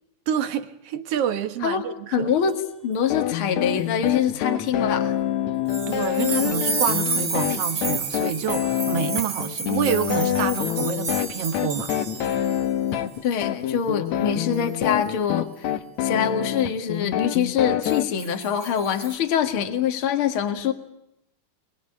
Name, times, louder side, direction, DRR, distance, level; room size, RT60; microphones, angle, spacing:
voice 1, 0.3-2.3 5.9-11.9, right 9 dB, 60° right, 2.2 m, -28 dB
voice 2, 2.1-2.6 2.8-5.1 13.2-15.7 16.0-20.7, left 8 dB, 50° left, 2.6 m, -24 dB
sound 1, 3.1-18.1, left 10 dB, 70° left, 2.4 m, -26 dB
sound 2, 5.7-12.6 12.9-13.2 14.5-14.8 17.8-19.1, right 4 dB, 35° right, 2.2 m, -31 dB
27.5 x 22.5 x 8.6 m
omnidirectional pair, 3.4 m